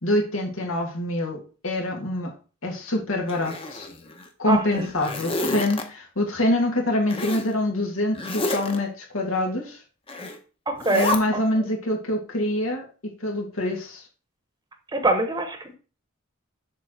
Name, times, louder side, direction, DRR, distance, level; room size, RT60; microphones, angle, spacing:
voice 1, 0.0-2.3 2.6-3.9 4.4-9.8 10.9-14.0, left 1 dB, 85° left, 0 dB, 2.2 m, -25 dB
Zipper (clothing), 3.3-4.3 4.7-5.8 7.1-7.5 8.1-8.8 10.1-10.4 10.8-11.2, left 2 dB, 25° left, 0.9 m, -29 dB
voice 2, 4.5-4.9 10.7-11.7 14.9-15.7, right 2 dB, 20° right, 6 dB, 0.9 m, -25 dB
7.5 x 3.5 x 6.4 m, 0.36 s
head